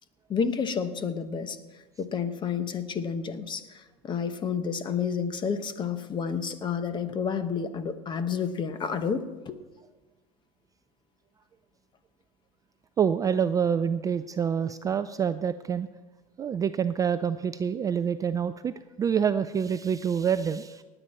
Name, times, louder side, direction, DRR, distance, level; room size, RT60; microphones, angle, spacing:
voice 1, 0.3-1.6 2.0-9.6, left 6 dB, 25° left, 11 dB, 0.9 m, -30 dB
voice 2, 13.0-15.9 16.4-20.8, right 7 dB, 20° right, 11 dB, 0.3 m, -27 dB
18.5 x 9.0 x 4.3 m, 1.2 s
supercardioid pair, 125°, 18 cm